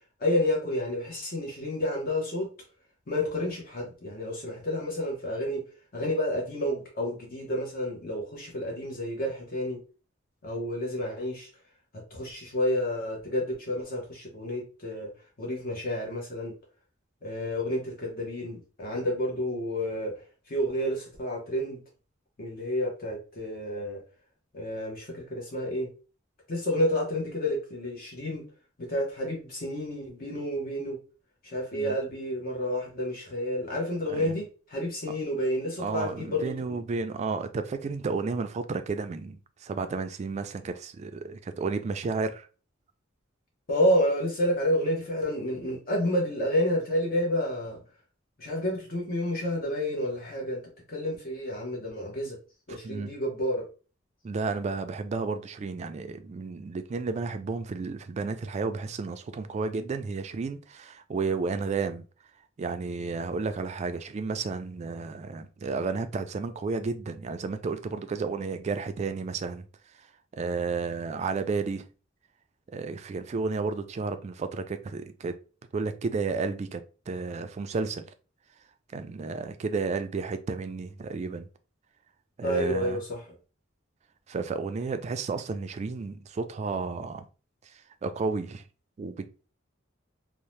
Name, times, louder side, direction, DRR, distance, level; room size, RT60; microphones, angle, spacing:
voice 1, 0.2-2.5 3.1-5.7 5.9-9.8 10.4-11.5 11.9-15.1 15.4-16.5 17.2-21.8 22.4-24.0 24.5-25.9 26.5-28.4 28.9-31.0 31.4-36.8 38.2-38.3 43.7-47.8 48.4-50.6 50.9-52.4 52.7-53.7 82.4-83.3, left 1 dB, 50° left, 0.8 m, -30 dB
voice 2, 35.8-42.5 52.7-53.1 54.2-62.0 62.6-69.7 70.3-71.8 72.7-75.4 75.7-78.1 78.9-81.5 82.4-83.0 84.3-87.3 88.0-88.6 89.0-89.2, right 4 dB, 35° right, 0.3 m, -32 dB
2.7 x 2.0 x 3.1 m
head